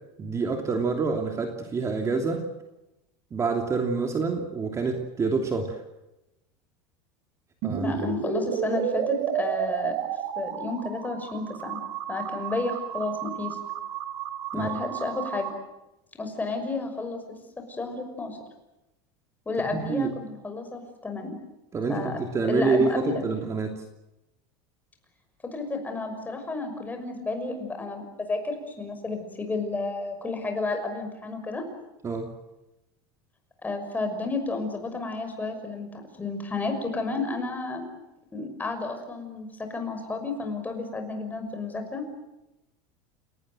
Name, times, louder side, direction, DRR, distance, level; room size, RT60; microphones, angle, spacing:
voice 1, 0.2-2.5 3.3-5.8 7.6-7.9 14.5-14.7 19.7-20.1 21.7-23.8 32.0-32.3, right 4 dB, 25° right, 3 dB, 3.0 m, -27 dB
sound 1, 7.6-15.5, right 9 dB, 65° right, 3.0 m, -31 dB
voice 2, 7.8-9.9 10.4-11.8 12.1-13.6 14.5-15.5 16.1-18.4 19.5-21.4 21.9-22.2 22.5-23.4 25.4-31.7 33.6-37.8 38.3-42.0, left 3 dB, 15° left, 5 dB, 6.1 m, -32 dB
30.0 x 19.0 x 7.9 m, 0.94 s
supercardioid pair, 130°, 12 cm